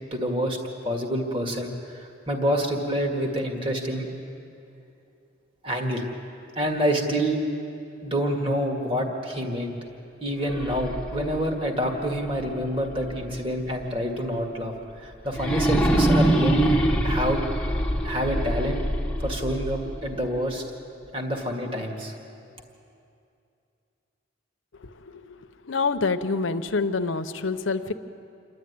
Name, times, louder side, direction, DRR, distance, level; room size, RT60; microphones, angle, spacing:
voice 1, 0.1-0.6 0.8-4.1 5.6-6.0 6.6-7.4 8.0-9.7 10.2-16.8 17.0-17.4 18.0-18.8 19.2-20.6 21.1-22.1, equal, 30° right, 2 dB, 1.9 m, -27 dB
sound 1, 10.4-13.4 13.8-13.9 15.3-20.4, right 1 dB, 5° left, 1.1 m, -25 dB
voice 2, 24.8-25.4 25.6-27.9, left 4 dB, 85° left, 8 dB, 0.9 m, -27 dB
28.0 x 12.0 x 9.5 m, 2.6 s
head